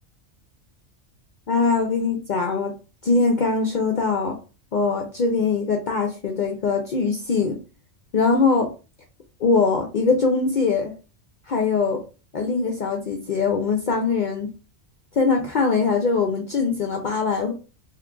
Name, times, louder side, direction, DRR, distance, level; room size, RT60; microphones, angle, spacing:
voice 1, 1.5-2.7 3.0-4.4 4.7-7.6 8.1-8.7 9.4-10.9 11.5-12.0 12.3-14.5 15.1-17.5, left 4 dB, 55° left, 3 dB, 0.5 m, -22 dB
3.0 x 2.3 x 3.7 m, 0.33 s
omnidirectional pair, 1.2 m